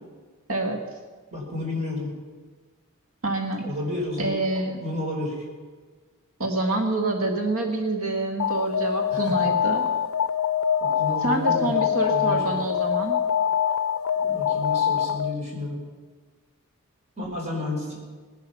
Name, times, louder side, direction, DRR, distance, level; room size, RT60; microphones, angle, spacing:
voice 1, 0.5-0.8 3.2-3.6 4.2-4.8 6.4-9.9 11.2-13.2, right 2 dB, 70° right, 3 dB, 1.7 m, -26 dB
voice 2, 1.3-2.1 3.6-4.4 4.8-5.4 9.1-9.5 10.8-12.6 14.2-15.8 17.2-17.9, left 2 dB, 35° right, -2 dB, 4.7 m, -31 dB
Alarm, 8.4-15.5, left 8 dB, 70° left, 0.5 m, -24 dB
19.0 x 11.0 x 5.9 m, 1.4 s
head